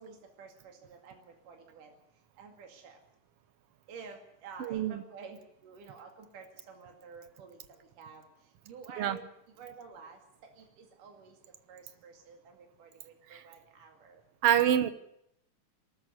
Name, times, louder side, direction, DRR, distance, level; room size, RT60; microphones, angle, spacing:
voice 1, 0.0-1.9 2.4-3.0 3.9-5.4 5.6-8.2 8.7-9.3 9.6-10.2 10.6-11.4 11.7-14.2, right 5 dB, 80° right, 3.8 m, -50 dB
voice 2, 4.6-5.0 9.0-9.2 13.3-13.4 14.4-14.9, right 10 dB, 60° right, 1.7 m, -26 dB
22.5 x 13.5 x 9.5 m
omnidirectional pair, 3.7 m